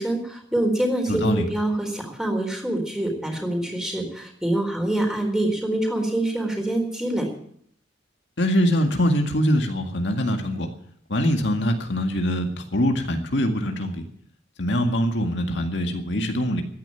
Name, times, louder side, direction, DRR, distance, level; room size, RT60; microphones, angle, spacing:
voice 1, 0.0-7.3, right 1 dB, 5° right, 2 dB, 4.2 m, -25 dB
voice 2, 1.1-1.5 8.4-10.7 11.1-14.0 14.6-16.6, equal, 70° left, 4 dB, 2.0 m, -23 dB
15.0 x 10.5 x 9.0 m, 0.64 s
head